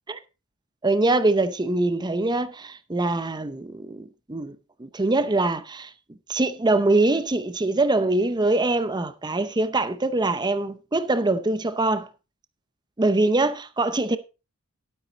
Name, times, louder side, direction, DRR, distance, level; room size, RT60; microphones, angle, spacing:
voice 1, 0.8-5.9 6.3-12.1 13.0-14.2, right 2 dB, 20° right, 0.6 m, -23 dB
12.0 x 8.1 x 4.0 m
head